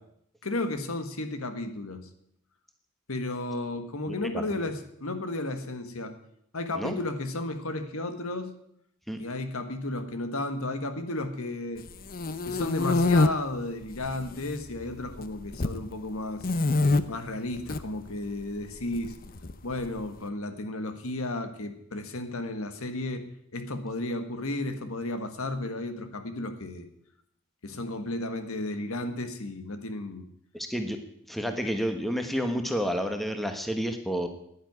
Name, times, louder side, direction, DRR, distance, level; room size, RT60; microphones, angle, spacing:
voice 1, 0.4-2.0 3.1-6.1 6.5-8.5 9.2-11.8 12.5-16.5 17.1-19.1 19.6-23.3 23.5-26.9 27.6-30.3, left 2 dB, 75° left, 8 dB, 1.6 m, -33 dB
voice 2, 4.1-4.6 6.8-7.0 9.1-9.2 30.5-31.0 31.3-34.3, equal, ahead, 6 dB, 1.3 m, -30 dB
sound 1, 11.9-13.3 13.9-14.5 14.8-15.8 16.4-17.0 17.6-17.8 18.9-19.9, left 2 dB, 40° left, 0.7 m, -25 dB
10.5 x 9.7 x 9.5 m, 0.72 s
head